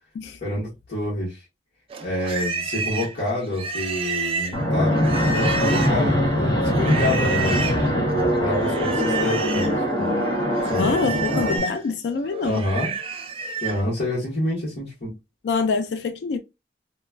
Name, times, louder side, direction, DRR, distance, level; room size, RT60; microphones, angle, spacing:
voice 1, 0.4-1.4 2.0-7.7 8.4-10.2 10.6-11.2 12.4-12.9 13.6-15.2, left 1 dB, 55° left, 1.3 m, -27 dB
Livestock farm animals working animals, 1.9-6.1 6.7-7.8 8.6-9.8 10.1-13.8, right 5 dB, 30° right, 0.3 m, -30 dB
Fixed-wing aircraft airplane, 4.5-11.6, equal, 20° left, 0.8 m, -22 dB
voice 2, 10.7-12.6 15.4-16.4, left 4 dB, 80° left, 0.4 m, -25 dB
3.0 x 2.2 x 2.2 m
head